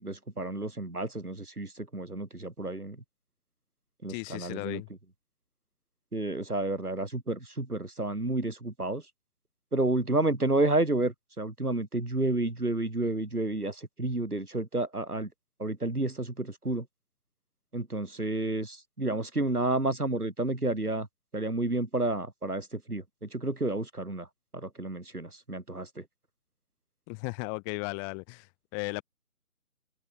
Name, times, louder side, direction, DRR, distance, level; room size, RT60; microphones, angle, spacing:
voice 1, 0.0-3.0 4.0-4.8 6.1-9.0 9.7-15.3 15.6-16.8 17.7-21.1 21.3-23.0 23.3-24.3 24.5-26.0, right 2 dB, 90° right, 4.7 m, -30 dB
voice 2, 4.1-4.9 27.1-29.0, left 40 dB or more, 15° left, 4.3 m, -36 dB
figure-of-eight pair, 150°, 44 cm